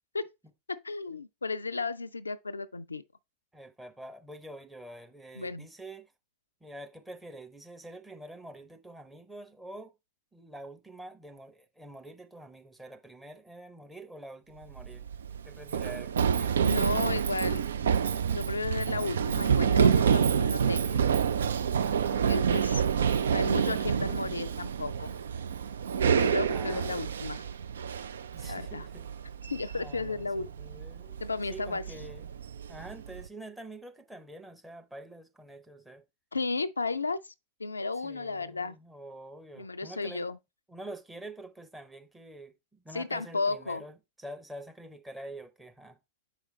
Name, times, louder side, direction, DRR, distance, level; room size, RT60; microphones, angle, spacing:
voice 1, 0.7-3.0 5.3-5.7 16.6-17.7 18.3-21.0 22.3-22.9 23.3-25.1 26.2-27.4 28.5-28.9 29.5-30.5 31.2-31.8 36.3-37.3 37.6-38.8 39.6-40.4 42.9-43.8, left 3 dB, 80° left, 0.3 m, -33 dB
voice 2, 3.5-6.1 6.6-9.9 10.3-15.1 15.4-17.0 21.8-22.3 26.5-27.2 28.3-29.1 29.7-31.1 31.5-32.3 32.7-36.0 38.0-40.3 40.7-46.0, right 1 dB, 5° right, 0.8 m, -46 dB
Run, 14.7-33.3, right 7 dB, 65° right, 0.3 m, -28 dB
7.2 x 5.0 x 3.1 m
figure-of-eight pair, 90°, 0 cm